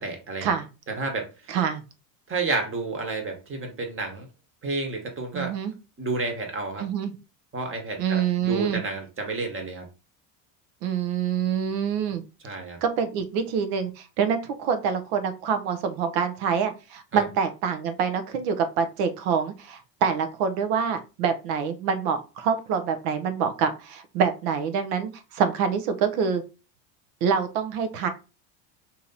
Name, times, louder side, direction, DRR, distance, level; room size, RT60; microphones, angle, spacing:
voice 1, 0.0-0.5 1.0-1.3 2.3-4.3 4.6-5.5 6.0-6.8 7.5-9.9 12.4-12.8 17.1-17.2, right 3 dB, 30° right, 4 dB, 1.2 m, -30 dB
voice 2, 1.5-1.8 5.3-5.7 6.8-7.1 8.0-8.8 10.8-12.2 12.8-26.4 27.2-28.1, right 6 dB, 80° right, 9 dB, 0.8 m, -26 dB
2.9 x 2.9 x 3.8 m, 0.31 s
supercardioid pair, 105°, 45 cm